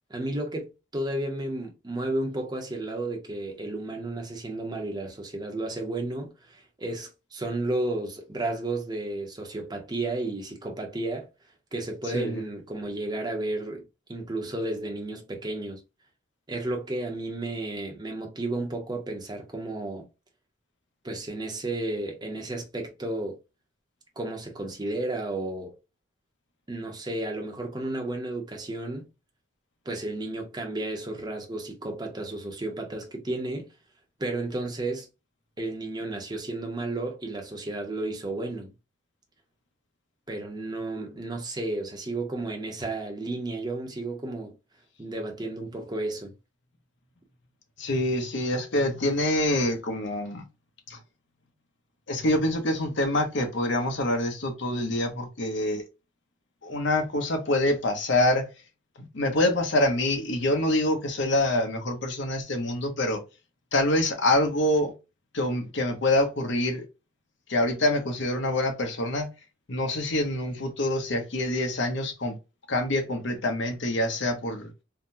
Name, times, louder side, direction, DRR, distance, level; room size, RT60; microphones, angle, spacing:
voice 1, 0.1-11.3 11.7-13.8 14.1-15.8 16.5-20.0 21.0-23.4 24.2-25.7 26.7-29.1 29.9-33.7 34.2-35.1 35.6-38.7 40.3-44.5 45.0-46.3, right 2 dB, 20° right, 0.8 m, -32 dB
voice 2, 47.8-50.4 50.9-51.0 52.1-55.8 56.6-58.5 59.0-63.2 63.7-64.9 65.3-66.8 67.5-69.3 69.7-72.4 72.7-74.7, left 1 dB, 65° left, 1.0 m, -26 dB
3.6 x 2.2 x 2.7 m
head